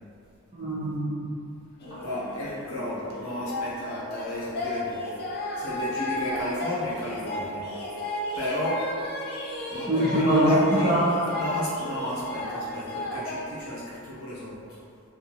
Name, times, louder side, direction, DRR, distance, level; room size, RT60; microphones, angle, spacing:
voice 1, 0.5-1.3 9.9-11.3, equal, 20° right, -13 dB, 0.6 m, -23 dB
sound 1, 1.8-13.4, left 1 dB, 50° left, 0.4 m, -34 dB
voice 2, 2.0-5.0 5.5-7.6 8.3-8.8 9.7-10.9 11.4-14.8, left 1 dB, 70° left, -8 dB, 0.9 m, -34 dB
2.6 x 2.4 x 2.7 m, 2.5 s
head